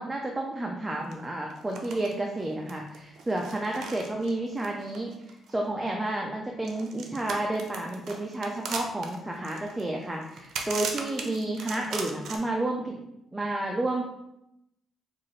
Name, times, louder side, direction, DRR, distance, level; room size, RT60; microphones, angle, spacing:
voice 1, 0.0-13.0 13.3-14.0, right 2 dB, 15° right, 0 dB, 0.5 m, -31 dB
sound 1, 1.1-1.2 1.5-2.1 2.4-5.7 6.6-12.4, right 5 dB, 75° right, 0.5 m, -38 dB
4.4 x 2.5 x 3.1 m, 0.85 s
cardioid pair, 90°, 0 cm